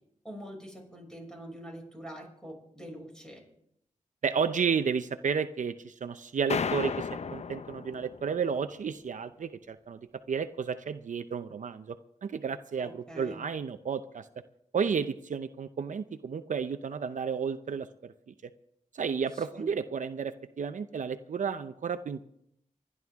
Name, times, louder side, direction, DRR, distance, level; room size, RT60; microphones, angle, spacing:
voice 1, 0.2-3.4 12.8-13.4 19.3-19.7, equal, 5° left, 0 dB, 6.2 m, -45 dB
voice 2, 4.2-12.0 12.2-14.3 14.7-18.1 18.9-22.2, right 6 dB, 70° right, 10 dB, 0.6 m, -32 dB
sound 1, 6.5-8.5, left 6 dB, 55° left, 0.5 m, -34 dB
26.5 x 11.0 x 3.6 m, 0.75 s
wide cardioid pair, 80°, 13 cm